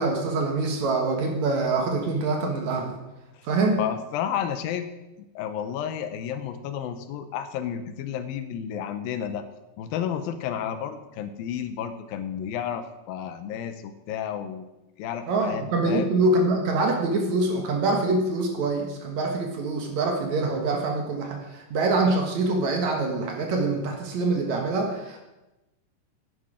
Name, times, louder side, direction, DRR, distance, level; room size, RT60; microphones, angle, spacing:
voice 1, 0.0-2.9 3.4-3.8 15.3-25.2, right 3 dB, 60° right, 3 dB, 2.4 m, -25 dB
voice 2, 3.8-4.9 5.4-9.4 9.8-14.7 15.0-16.1, left 9 dB, 85° left, 10 dB, 2.6 m, -31 dB
10.5 x 9.5 x 5.0 m, 1.0 s
omnidirectional pair, 4.0 m